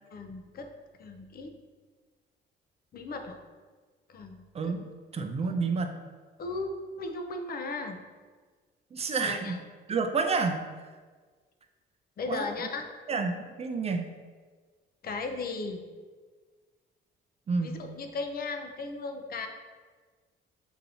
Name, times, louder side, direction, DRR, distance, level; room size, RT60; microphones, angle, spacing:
voice 1, 0.1-0.7 1.0-1.6 2.9-3.4 4.1-4.7 5.1-5.3 6.4-8.0 9.2-9.6 12.2-12.9 15.0-15.8 17.6-19.5, left 3 dB, 50° left, 5 dB, 0.6 m, -36 dB
voice 2, 4.5-4.9 5.1-6.0 8.9-9.6 9.9-10.6 12.3-12.7 13.1-14.1 17.5-17.8, right 4 dB, 30° right, 6 dB, 0.5 m, -29 dB
6.7 x 2.7 x 2.8 m, 1.5 s
cardioid pair, 90°, 20 cm